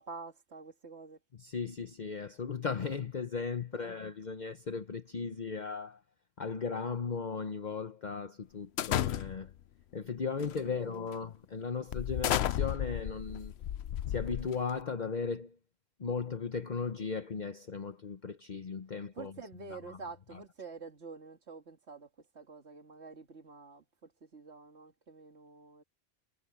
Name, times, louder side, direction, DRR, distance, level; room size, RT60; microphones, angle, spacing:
voice 1, 0.0-1.2 3.7-4.0 10.6-10.9 19.2-22.1 22.3-25.8, right 4 dB, 85° right, 2.1 m, -48 dB
voice 2, 1.3-6.0 6.4-9.5 9.9-13.5 14.1-15.6 16.0-19.3 19.7-20.0 20.3-20.4, left 5 dB, 45° left, 1.0 m, -37 dB
sound 1, 8.8-9.6 10.4-10.7 11.1-11.2 11.9-14.8, left 11 dB, 75° left, 0.9 m, -33 dB
omnidirectional pair, 1.1 m